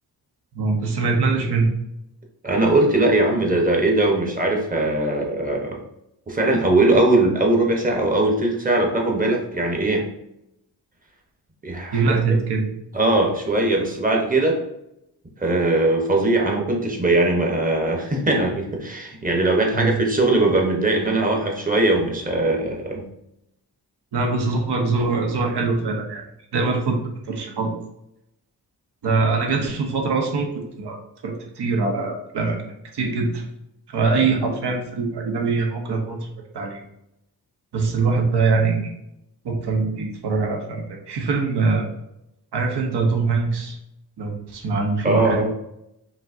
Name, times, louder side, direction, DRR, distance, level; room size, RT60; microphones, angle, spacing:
voice 1, 0.5-1.7 11.9-12.7 19.7-19.9 24.1-26.2 26.5-27.7 29.0-30.5 30.8-31.0 31.2-32.6 32.9-33.4 33.9-36.3 36.5-36.8 37.7-38.9 39.4-41.9 42.5-43.8 44.2-45.5, right 4 dB, 85° right, 2 dB, 0.9 m, -23 dB
voice 2, 2.4-5.8 6.3-10.1 11.6-12.4 12.9-14.6 15.4-23.1 45.0-45.5, right 2 dB, 20° right, 0 dB, 0.8 m, -20 dB
5.2 x 2.8 x 2.5 m, 0.84 s
wide cardioid pair, 125°, 39 cm